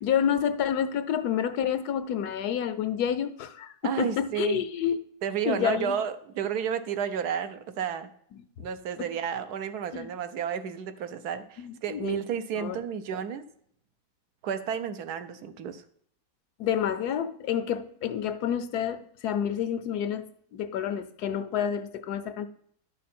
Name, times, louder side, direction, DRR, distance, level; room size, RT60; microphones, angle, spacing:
voice 1, 0.0-5.0 5.5-5.9 9.0-9.1 9.9-10.1 11.6-12.2 12.6-12.8 16.6-22.5, left 8 dB, 80° left, 10 dB, 1.3 m, -29 dB
voice 2, 3.8-4.6 5.2-8.1 8.6-13.4 14.4-15.8, right 8 dB, 80° right, 10 dB, 1.3 m, -32 dB
11.0 x 6.4 x 4.3 m, 0.64 s
omnidirectional pair, 1.7 m